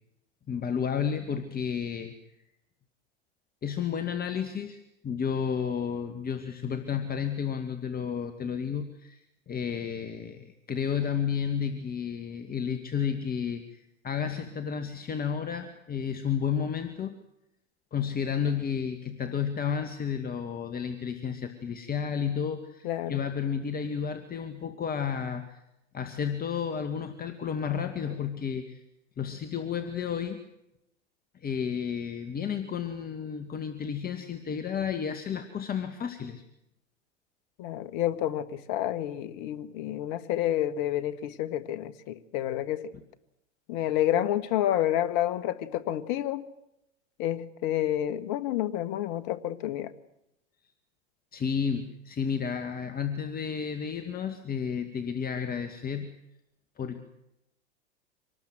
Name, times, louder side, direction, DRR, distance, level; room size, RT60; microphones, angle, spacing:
voice 1, 0.5-2.1 3.6-17.2 17.9-25.6 25.9-28.8 29.2-30.4 31.3-36.4 42.9-43.0 51.3-56.1 56.8-57.0, left 7 dB, 25° left, 8 dB, 2.0 m, -32 dB
voice 2, 22.8-23.2 37.6-42.9 43.7-46.5 47.2-49.9, left 12 dB, 50° left, 13 dB, 1.9 m, -29 dB
26.0 x 19.5 x 7.8 m, 0.86 s
hypercardioid pair, 95°, 34 cm